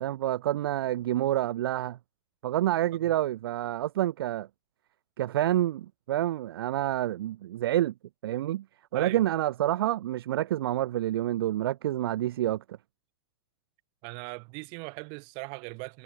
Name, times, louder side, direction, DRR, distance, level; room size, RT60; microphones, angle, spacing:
voice 1, 0.0-2.0 2.4-4.5 5.2-7.9 8.2-8.6 8.9-12.8, right 13 dB, 65° right, 0.5 m, -28 dB
voice 2, 14.0-16.0, right 37 dB, 35° right, 4.8 m, -39 dB
supercardioid pair, 160°, 13 cm